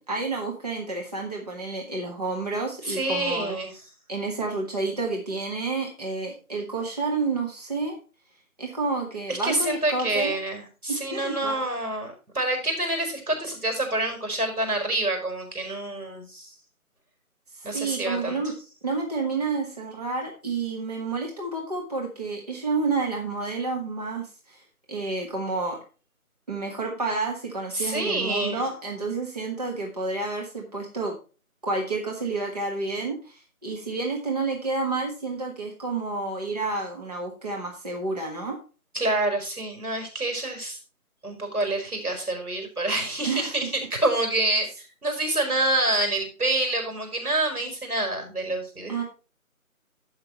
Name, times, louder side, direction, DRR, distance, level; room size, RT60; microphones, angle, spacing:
voice 1, 0.0-3.6 4.1-8.0 8.6-10.4 10.9-11.6 17.5-18.5 18.8-24.6 24.9-25.8 26.5-31.1 31.6-38.6 43.2-43.7 48.9-49.0, right 3 dB, 25° right, -1 dB, 1.4 m, -30 dB
voice 2, 2.8-3.7 9.3-16.6 17.6-18.4 27.7-28.7 38.9-40.8 41.2-48.9, right 2 dB, 85° right, 4 dB, 5.2 m, -27 dB
15.0 x 5.9 x 3.0 m, 0.34 s
figure-of-eight pair, 165°, 44 cm